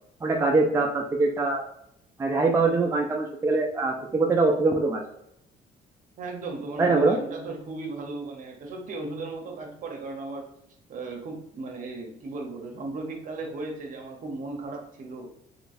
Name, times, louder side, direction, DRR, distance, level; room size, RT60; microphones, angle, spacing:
voice 1, 0.2-1.6 2.2-5.0 6.8-7.2, right 3 dB, 15° right, 1 dB, 0.4 m, -23 dB
voice 2, 6.2-10.5 10.9-15.3, right 3 dB, 50° right, 2 dB, 0.9 m, -36 dB
3.1 x 3.0 x 2.6 m, 0.75 s
cardioid pair, 110°, 17 cm